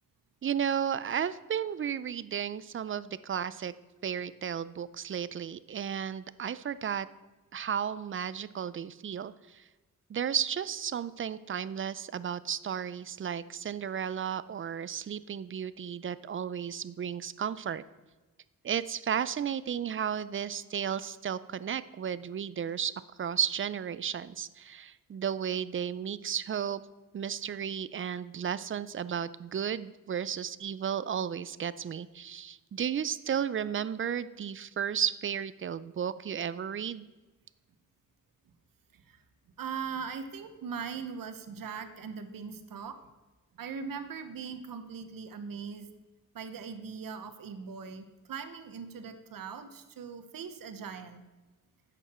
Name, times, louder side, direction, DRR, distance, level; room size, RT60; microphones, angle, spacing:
voice 1, 0.4-3.7 4.0-7.1 7.5-9.6 10.1-17.8 18.6-22.9 23.2-26.8 27.1-37.1, right 8 dB, 40° right, 16 dB, 0.4 m, -33 dB
voice 2, 39.6-43.0 43.6-45.9 46.3-51.2, right 6 dB, 85° right, 9 dB, 1.0 m, -40 dB
11.0 x 8.0 x 4.3 m, 1.2 s
wide cardioid pair, 130°, 33 cm